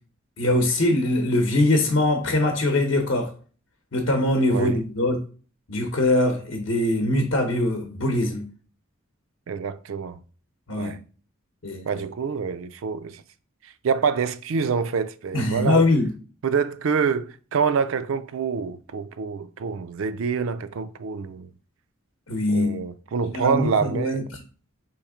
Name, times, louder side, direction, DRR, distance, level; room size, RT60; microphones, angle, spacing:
voice 1, 0.4-3.3 3.9-5.2 5.7-8.5 10.7-10.9 11.6-11.9 15.3-16.1 22.3-22.8 23.3-24.4, left 1 dB, 65° left, 0.8 m, -22 dB
voice 2, 4.5-4.8 9.5-10.2 10.8-11.0 11.9-13.2 13.8-15.8 16.4-21.5 22.5-24.2, right 6 dB, 75° right, 0.4 m, -26 dB
3.4 x 3.1 x 4.8 m
head